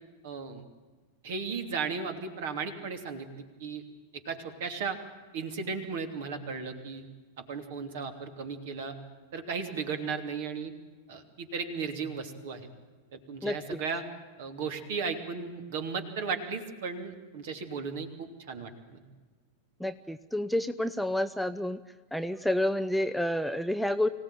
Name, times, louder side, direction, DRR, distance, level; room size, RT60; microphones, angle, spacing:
voice 1, 0.2-0.6 1.2-3.8 4.1-5.0 5.3-7.0 7.4-9.0 9.3-10.7 11.1-12.7 13.1-14.0 14.4-19.0, right 5 dB, 55° right, 6 dB, 2.9 m, -35 dB
voice 2, 13.4-13.8 19.8-21.8 22.1-24.1, left 1 dB, ahead, 9 dB, 0.7 m, -29 dB
25.0 x 17.5 x 9.1 m, 1.4 s
figure-of-eight pair, 90°, 0 cm